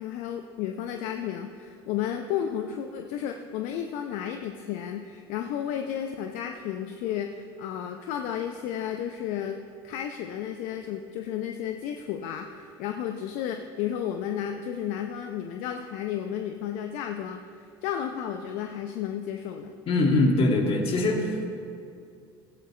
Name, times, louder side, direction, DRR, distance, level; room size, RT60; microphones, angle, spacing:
voice 1, 0.0-9.6 9.8-19.7, left 9 dB, 65° left, 5 dB, 0.7 m, -33 dB
voice 2, 19.9-21.5, left 2 dB, 50° left, 1 dB, 2.3 m, -23 dB
16.5 x 12.5 x 3.3 m, 2.4 s
hypercardioid pair, 75°, 13 cm